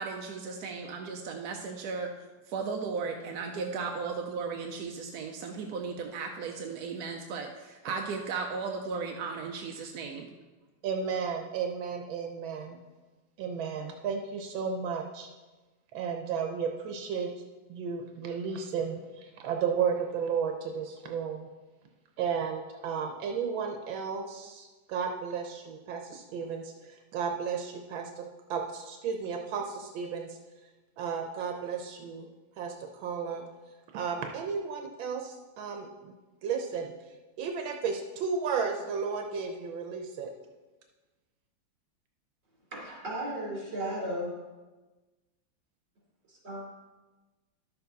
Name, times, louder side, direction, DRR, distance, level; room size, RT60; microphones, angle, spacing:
voice 1, 0.0-2.1 2.5-10.3, right 5 dB, 65° right, 2 dB, 1.1 m, -36 dB
voice 2, 10.8-12.8 13.4-15.3 15.9-17.3 17.7-21.5 22.2-28.2 28.5-30.4 31.0-32.3 32.6-33.4 33.9-36.1 36.4-36.9 37.4-40.3, right 6 dB, 85° right, 3 dB, 1.6 m, -33 dB
voice 3, 42.7-44.4 46.3-46.7, right 1 dB, 40° right, -5 dB, 3.9 m, -35 dB
11.5 x 7.0 x 4.0 m, 1.2 s
omnidirectional pair, 2.1 m